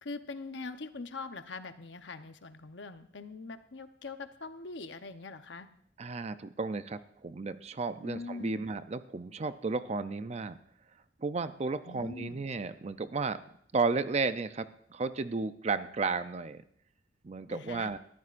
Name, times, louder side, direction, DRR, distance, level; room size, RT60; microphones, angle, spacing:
voice 1, 0.0-5.7 8.0-8.6 11.9-12.4 17.5-17.9, left 3 dB, 75° left, 8 dB, 0.9 m, -42 dB
voice 2, 6.0-10.6 11.2-13.4 13.7-16.6 17.2-18.0, right 4 dB, 35° right, 12 dB, 0.5 m, -33 dB
22.0 x 14.0 x 2.5 m, 0.65 s
head